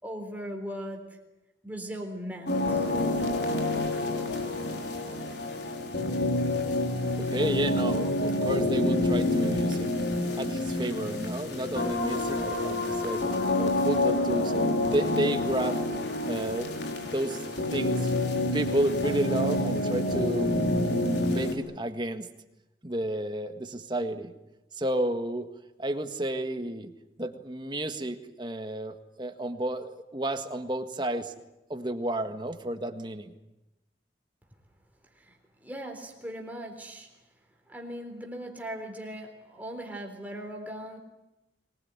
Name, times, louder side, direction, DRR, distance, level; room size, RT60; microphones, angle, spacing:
voice 1, 0.0-1.2 1.6-2.9 35.2-37.1 37.7-41.0, equal, 10° right, 2 dB, 3.7 m, -39 dB
sound 1, 2.5-21.5, left 1 dB, 70° left, 3.9 m, -28 dB
voice 2, 7.2-9.9 10.3-13.2 13.6-15.8 16.3-16.8 17.0-17.4 17.7-18.2 18.5-22.3 22.8-24.3 24.7-25.5 25.8-26.9 27.2-31.3 31.7-33.3, right 1 dB, 25° right, 7 dB, 1.6 m, -31 dB
23.5 x 20.0 x 9.7 m, 0.97 s
head